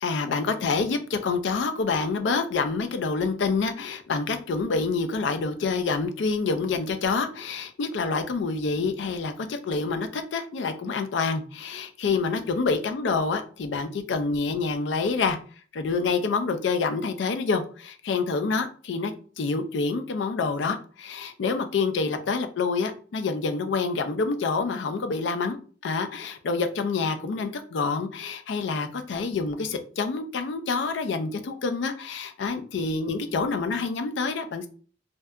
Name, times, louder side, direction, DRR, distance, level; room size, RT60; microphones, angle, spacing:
voice 1, 0.0-15.4 15.7-25.6 25.8-34.7, left 4 dB, 70° left, 8 dB, 0.4 m, -27 dB
2.7 x 2.2 x 2.3 m, 0.41 s
head